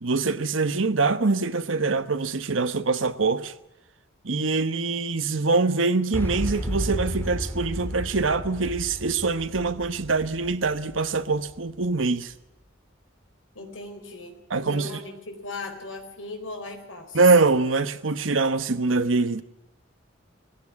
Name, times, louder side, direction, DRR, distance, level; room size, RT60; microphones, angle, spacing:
voice 1, 0.0-3.5 4.2-12.3 14.5-15.0 17.1-19.4, right 3 dB, 90° right, 1.2 m, -24 dB
Boom, 6.1-12.0, equal, 10° left, 2.9 m, -33 dB
voice 2, 13.5-17.2, left 2 dB, 85° left, 4.3 m, -38 dB
20.5 x 16.5 x 9.5 m
head